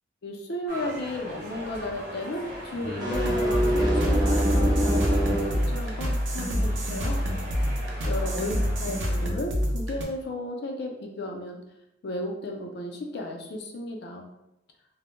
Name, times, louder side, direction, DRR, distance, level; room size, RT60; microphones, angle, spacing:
voice 1, 0.2-7.2 8.0-11.6 12.0-14.3, left 1 dB, 60° left, 2 dB, 0.4 m, -34 dB
sound 1, 0.7-9.3, equal, 55° right, 0.9 m, -40 dB
sound 2, 2.8-5.6, equal, 25° right, 0.6 m, -24 dB
sound 3, 3.1-10.0, equal, 75° right, 0.5 m, -28 dB
2.1 x 2.0 x 3.0 m, 0.87 s
head